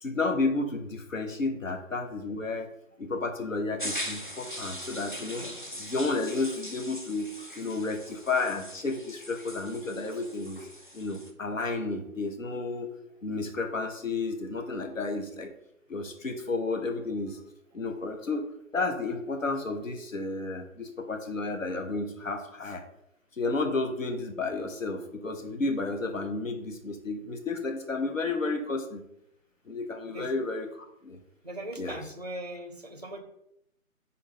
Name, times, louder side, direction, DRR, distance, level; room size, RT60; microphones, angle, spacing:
voice 1, 0.0-2.7 3.0-5.4 5.8-10.6 10.9-12.9 13.2-15.5 15.9-17.4 17.7-18.5 18.7-22.8 23.4-29.0 29.7-31.2 31.8-32.0, left 3 dB, 65° left, 5 dB, 1.2 m, -32 dB
sound 1, 3.8-11.3, equal, 35° left, 0.5 m, -40 dB
voice 2, 31.4-33.2, right 1 dB, 30° right, 6 dB, 0.6 m, -39 dB
6.4 x 5.5 x 3.8 m, 0.77 s
figure-of-eight pair, 155°, 43 cm